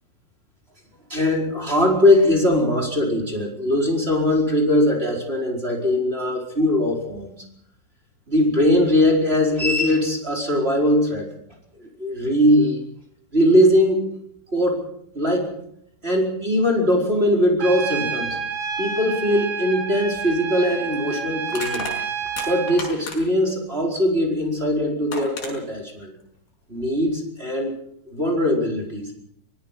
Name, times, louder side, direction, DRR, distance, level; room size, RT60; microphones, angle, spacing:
voice 1, 1.1-7.3 8.3-11.3 11.8-12.8 13.3-14.1 14.5-14.8 15.1-15.5 16.0-18.4 18.8-21.9 22.4-26.1 26.7-27.7 28.1-29.1, left 1 dB, 10° right, 0 dB, 4.2 m, -20 dB
Trumpet, 17.6-22.8, right 6 dB, 50° right, 2.1 m, -29 dB
Crushing, 20.1-20.3 21.5-23.5 24.6-24.7 25.1-25.5, left 3 dB, 45° left, 7.4 m, -33 dB
24.0 x 20.5 x 5.8 m, 0.72 s
omnidirectional pair, 6.0 m